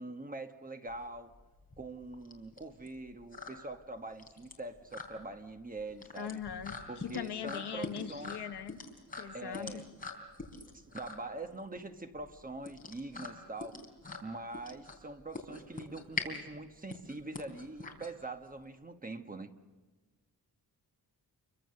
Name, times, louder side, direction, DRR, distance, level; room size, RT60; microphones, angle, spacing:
voice 1, 0.0-1.3 1.8-6.4 6.9-8.4 9.3-9.9 10.7-13.8 14.2-19.5, right 2 dB, 20° right, 7 dB, 1.2 m, -43 dB
sound 1, 0.9-18.6, left 3 dB, 20° left, 3.6 m, -44 dB
voice 2, 6.1-8.8 9.2-9.8, left 8 dB, 90° left, 8 dB, 1.2 m, -41 dB
29.0 x 24.0 x 6.6 m, 1.3 s
wide cardioid pair, 155°, 39 cm